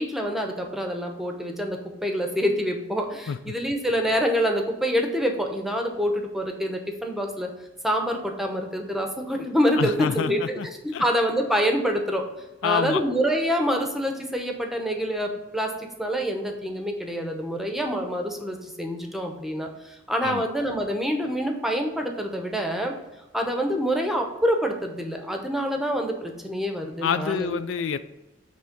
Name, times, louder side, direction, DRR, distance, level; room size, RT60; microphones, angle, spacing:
voice 1, 0.0-7.5 7.8-10.6 10.8-12.2 12.6-22.9 23.3-27.6, equal, ahead, 3 dB, 0.8 m, -26 dB
voice 2, 9.8-10.7 10.9-11.0 12.6-13.0 20.2-20.5 27.0-28.0, left 6 dB, 75° left, 12 dB, 0.4 m, -27 dB
7.8 x 3.4 x 5.1 m, 1.0 s
head